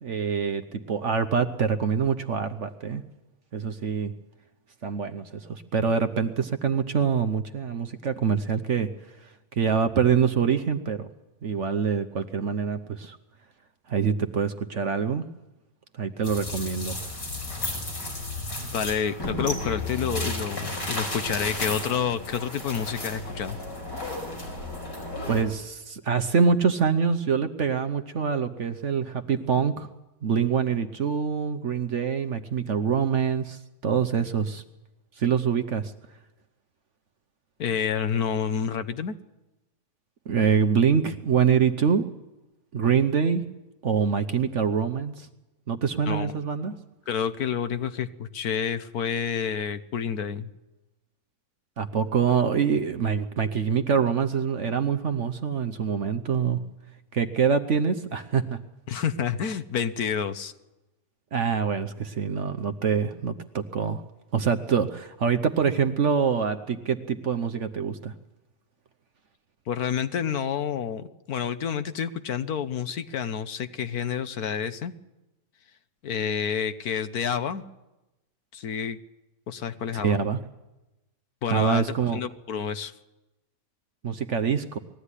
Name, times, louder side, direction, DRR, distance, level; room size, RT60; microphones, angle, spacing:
voice 1, 0.0-3.0 3.5-4.1 4.8-8.9 9.5-11.1 11.4-13.2 13.9-15.2 15.9-17.0 25.3-29.9 30.2-34.6 35.2-35.9 40.3-42.1 42.7-43.4 43.8-45.3 45.7-46.7 51.8-56.6 57.1-58.6 61.3-64.0 64.3-68.1 80.0-80.4 81.5-82.2 84.0-84.8, right 6 dB, 50° right, 9 dB, 1.0 m, -25 dB
sound 1, 16.2-25.4, left 2 dB, 85° left, 5.7 m, -33 dB
voice 2, 18.6-23.6 37.6-39.2 46.1-46.4 47.1-50.5 58.9-60.5 69.7-74.9 76.0-77.6 78.5-79.0 79.5-80.2 81.4-81.8 82.1-82.9, left 7 dB, 65° left, 11 dB, 1.4 m, -29 dB
21.0 x 15.0 x 9.9 m, 1.0 s
omnidirectional pair, 1.8 m